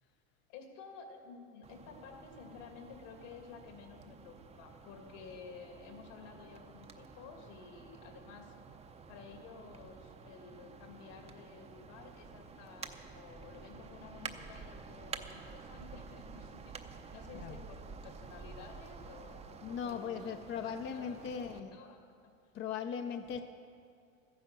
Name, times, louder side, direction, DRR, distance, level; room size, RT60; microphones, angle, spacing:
voice 1, 0.5-8.5 9.1-22.0, left 5 dB, 70° left, 3 dB, 2.6 m, -52 dB
sound 1, 1.6-21.6, right 5 dB, 15° right, 0.6 m, -50 dB
voice 2, 19.6-21.8 22.5-23.4, left 7 dB, 30° left, 7 dB, 0.5 m, -39 dB
14.0 x 10.5 x 6.8 m, 2.3 s
supercardioid pair, 120°, 40 cm